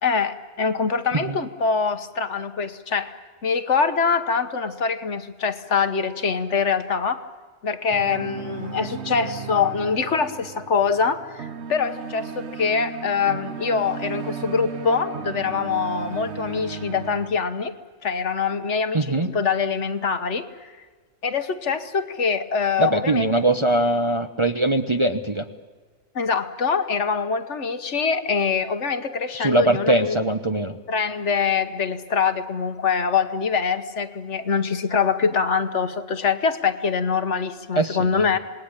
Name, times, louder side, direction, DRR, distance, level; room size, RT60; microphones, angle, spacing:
voice 1, 0.0-3.1 3.4-7.2 7.6-17.7 18.0-20.7 21.2-23.3 26.1-30.2 30.9-38.4, left 5 dB, 60° left, 10 dB, 1.4 m, -24 dB
sound 1, 7.9-17.3, right 6 dB, 55° right, 1.2 m, -35 dB
voice 2, 18.9-19.3 22.8-25.5 29.3-30.8 37.8-38.3, right 1 dB, 25° right, 6 dB, 0.8 m, -22 dB
27.5 x 20.0 x 8.9 m, 1.4 s
omnidirectional pair, 1.4 m